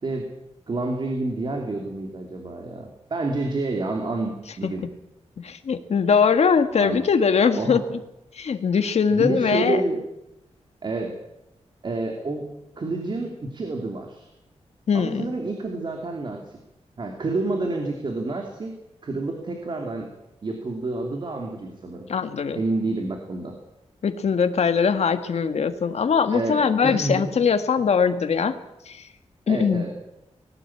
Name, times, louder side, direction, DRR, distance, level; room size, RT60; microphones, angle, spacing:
voice 1, 0.7-4.9 6.8-7.0 7.5-7.8 9.1-10.0 10.8-11.1 11.8-12.5 12.8-14.3 14.9-16.6 17.0-18.8 19.0-20.1 20.4-22.1 22.6-23.6 26.3-27.3 29.5-29.9, right 2 dB, 45° right, 3 dB, 2.8 m, -29 dB
voice 2, 5.4-7.8 8.4-9.8 14.9-15.3 22.1-22.6 24.0-28.5 28.9-29.0 29.5-29.9, left 6 dB, 70° left, 8 dB, 1.7 m, -21 dB
19.5 x 17.0 x 8.7 m, 0.90 s
wide cardioid pair, 170°, 11 cm